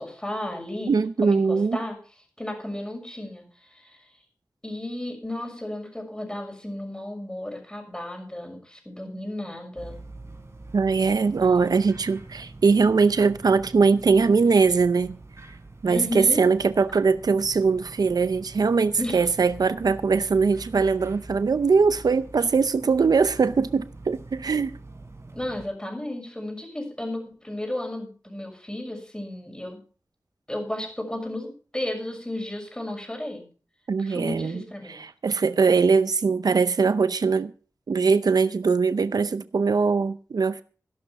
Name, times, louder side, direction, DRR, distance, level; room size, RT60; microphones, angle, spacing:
voice 1, 0.0-0.9 1.2-2.0 2.4-4.0 4.6-10.0 11.4-11.6 15.9-16.4 19.0-19.2 25.3-29.8 30.5-33.5 34.0-35.1, left 1 dB, 15° left, 6.4 m, -33 dB
voice 2, 0.9-1.8 10.7-15.2 15.8-24.8 33.9-34.6 34.9-37.5 37.9-40.6, right 5 dB, 80° right, 0.6 m, -21 dB
sound 1, 9.8-25.7, right 2 dB, 45° right, 4.0 m, -44 dB
15.0 x 11.5 x 4.2 m
wide cardioid pair, 85°, 7 cm